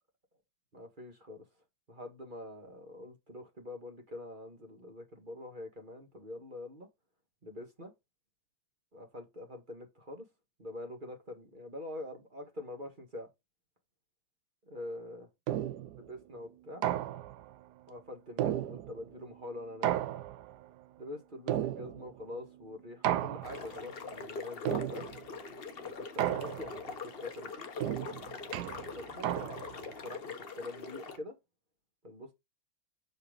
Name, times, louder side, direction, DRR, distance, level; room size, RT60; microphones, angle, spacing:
voice 1, 0.7-1.4 1.9-6.9 7.4-7.9 8.9-10.2 10.6-13.3 14.7-15.3 16.0-16.8 17.9-19.9 21.0-25.1 25.8-27.5 27.7-28.0 29.0-29.3 29.7-31.4 32.0-32.3, left 1 dB, 30° right, 1.5 m, -45 dB
sound 1, 15.5-16.0 16.8-17.5 18.4-19.1 19.8-20.6 21.5-22.2 23.0-23.8 24.7-25.3 26.2-26.9 27.8-29.8, right 12 dB, 75° right, 1.1 m, -34 dB
sound 2, 23.4-31.2, left 5 dB, 40° left, 0.9 m, -43 dB
6.8 x 4.2 x 5.0 m
omnidirectional pair, 2.0 m